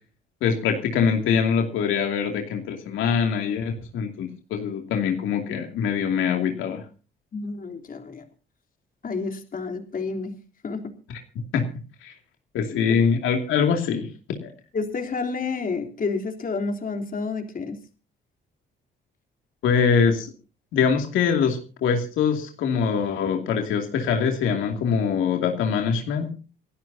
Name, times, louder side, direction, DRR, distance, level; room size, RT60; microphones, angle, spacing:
voice 1, 0.4-6.8 11.5-11.7 12.0-12.1 12.5-14.5 19.6-20.3 20.7-26.3, left 6 dB, 85° left, 3 dB, 2.6 m, -23 dB
voice 2, 7.3-8.2 9.0-10.3 10.6-10.9 12.9-13.0 14.7-17.8, left 4 dB, 45° left, 4 dB, 3.4 m, -30 dB
28.5 x 11.5 x 2.8 m, 0.35 s
cardioid pair, 90°, 20 cm